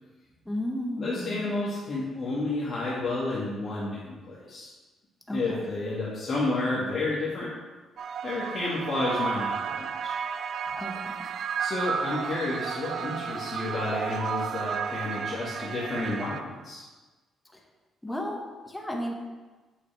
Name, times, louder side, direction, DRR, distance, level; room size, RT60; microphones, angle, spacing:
voice 1, 0.4-1.4 5.3-5.7 10.8-11.3 18.0-19.1, equal, 10° left, 0 dB, 1.4 m, -34 dB
voice 2, 1.0-4.7 5.3-7.5 8.2-10.1 11.6-16.8, left 2 dB, 45° left, -8 dB, 2.0 m, -31 dB
sound 1, 8.0-16.4, right 7 dB, 65° right, 0.4 m, -33 dB
8.4 x 6.0 x 3.5 m, 1.2 s
cardioid pair, 90°, 0 cm